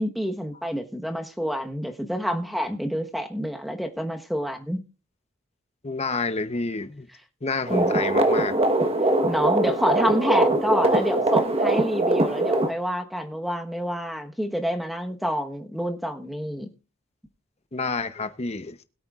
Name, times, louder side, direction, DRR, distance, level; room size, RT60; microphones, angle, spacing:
voice 1, 0.0-4.8 7.7-7.9 9.3-16.7, equal, ahead, 1.2 m, -28 dB
voice 2, 5.8-7.1 7.4-8.5 17.7-18.8, left 3 dB, 30° left, 0.8 m, -29 dB
sound 1, 7.7-12.7, right 2 dB, 30° right, 1.2 m, -22 dB
21.0 x 8.6 x 2.4 m
head